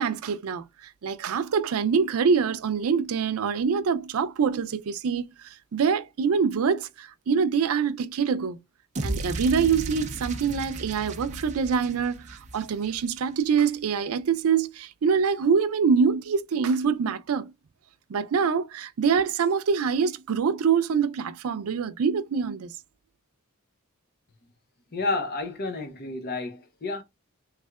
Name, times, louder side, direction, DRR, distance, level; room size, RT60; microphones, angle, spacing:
voice 1, 0.0-8.6 9.0-17.5 18.1-22.7, right 6 dB, 85° right, 0.4 m, -25 dB
sound 1, 9.0-13.2, right 2 dB, 35° right, 0.5 m, -35 dB
voice 2, 24.9-27.0, left 3 dB, 45° left, 0.8 m, -30 dB
3.5 x 3.2 x 2.3 m
head